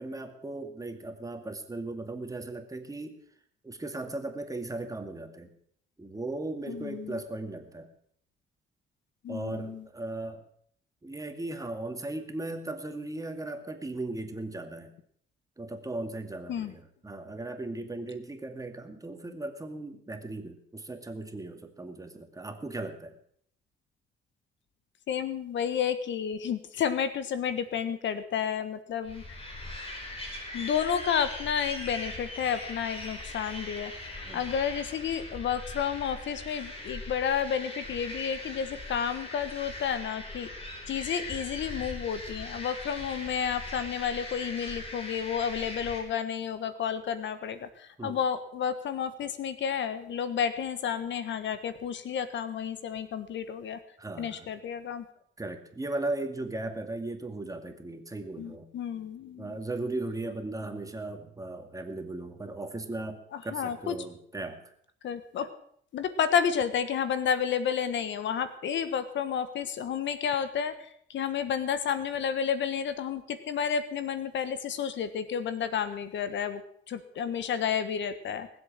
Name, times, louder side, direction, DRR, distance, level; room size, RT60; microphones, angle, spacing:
voice 1, 0.0-3.2 3.6-5.5 6.0-7.9 9.3-10.4 11.0-14.9 15.6-23.2 34.2-34.5 48.0-48.2 54.0-54.5 55.4-58.7 59.4-64.6, right 2 dB, 15° right, 6 dB, 2.3 m, -37 dB
voice 2, 6.7-7.2 9.2-9.8 16.5-16.7 25.1-29.4 30.5-40.5 40.9-53.8 54.2-55.0 58.4-59.6 63.3-64.0 65.0-65.5 65.9-76.6 76.9-78.5, left 8 dB, 70° left, 11 dB, 1.4 m, -31 dB
sound 1, 29.0-46.0, left 1 dB, 30° left, 5.4 m, -40 dB
19.5 x 8.0 x 7.6 m, 0.64 s
cardioid pair, 90°, 20 cm